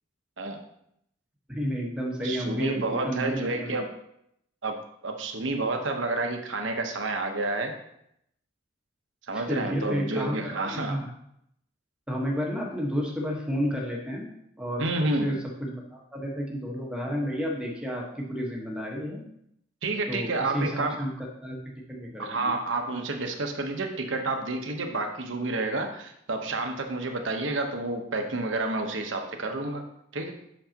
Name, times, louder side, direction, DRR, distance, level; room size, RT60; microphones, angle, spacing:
voice 1, 1.5-3.7 9.3-10.4 10.7-11.1 12.1-14.3 14.6-14.9 15.2-19.2 20.1-21.1 21.4-21.6 21.9-22.5, equal, 5° right, -3 dB, 1.3 m, -31 dB
voice 2, 2.2-3.9 4.6-4.7 5.0-7.7 9.3-11.0 14.8-15.3 19.8-21.0 22.2-29.8 30.1-30.3, right 2 dB, 65° right, 4 dB, 1.0 m, -29 dB
8.1 x 6.3 x 2.9 m, 0.75 s
head